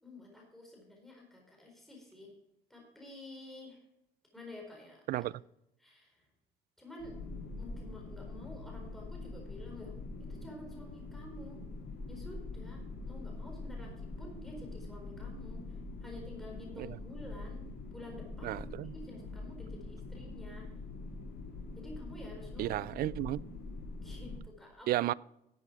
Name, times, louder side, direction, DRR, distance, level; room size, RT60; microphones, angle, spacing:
voice 1, 0.0-2.3 2.7-3.8 4.3-5.3 5.8-6.3 6.8-7.2 7.6-9.9 10.2-11.6 12.1-20.7 21.8-22.8 24.0-25.0, left 1 dB, ahead, 4.3 m, -50 dB
sound 1, 7.0-24.4, left 2 dB, 70° left, 3.1 m, -44 dB
voice 2, 18.4-18.9 22.6-23.4 24.9-25.1, right 15 dB, 60° right, 0.4 m, -32 dB
12.0 x 8.3 x 4.8 m
cardioid pair, 110°, 17 cm